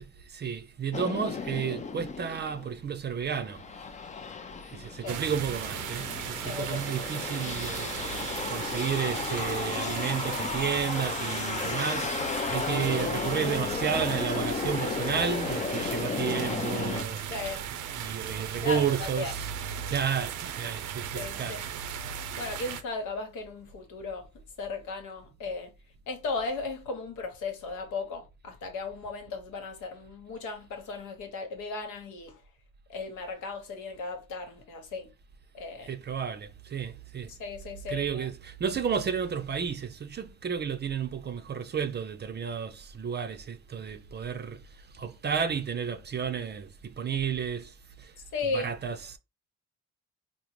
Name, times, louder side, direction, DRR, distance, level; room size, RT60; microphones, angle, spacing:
voice 1, 0.2-3.6 4.6-7.9 8.5-17.2 18.0-19.5 19.9-21.6 35.8-37.3 37.9-48.1 48.4-49.2, right 7 dB, 35° right, 0.5 m, -32 dB
sound 1, 0.9-2.7 3.2-17.0, left 5 dB, 25° left, 0.4 m, -34 dB
sound 2, 5.1-22.8, right 8 dB, 85° right, 0.5 m, -37 dB
voice 2, 6.4-6.8 17.2-17.7 18.6-19.3 21.1-21.6 22.4-24.3 24.6-25.7 26.1-32.4 32.9-35.1 35.5-35.9 37.3-38.3 48.3-48.7, left 3 dB, 85° left, 1.0 m, -36 dB
3.7 x 2.0 x 2.9 m
cardioid pair, 90°, 30 cm